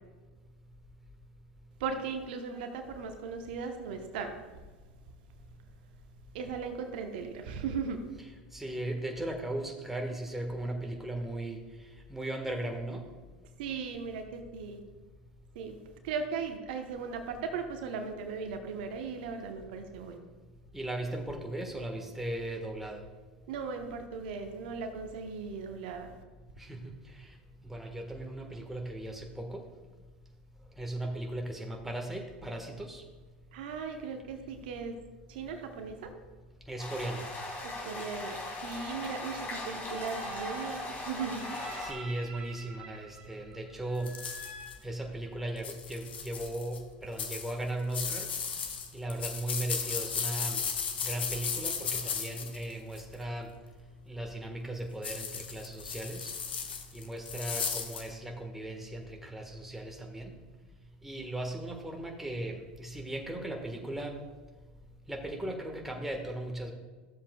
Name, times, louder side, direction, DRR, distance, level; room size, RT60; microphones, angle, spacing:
voice 1, 1.8-4.7 6.3-8.0 13.6-14.8 15.5-15.8 16.0-20.2 23.5-26.2 33.5-34.9 35.3-36.1 37.8-38.4 38.6-41.5, right 5 dB, 65° right, 5 dB, 0.9 m, -37 dB
voice 2, 8.5-11.6 12.1-13.0 20.7-23.0 26.6-27.3 27.6-29.6 30.8-33.0 36.7-37.2 41.8-44.1 44.8-48.3 48.9-50.6 51.0-53.5 54.1-56.3 56.9-60.4 61.0-64.2 65.1-66.7, right 1 dB, 5° right, 2 dB, 1.3 m, -37 dB
sound 1, 36.8-41.9, left 2 dB, 30° left, 2.6 m, -39 dB
sound 2, 39.6-45.7, right 3 dB, 30° right, 1.9 m, -47 dB
sound 3, 44.1-44.7 45.6-46.8 47.2-53.1 55.0-58.1, left 6 dB, 80° left, 0.9 m, -35 dB
13.0 x 7.4 x 2.3 m, 1.3 s
hypercardioid pair, 85°, 6 cm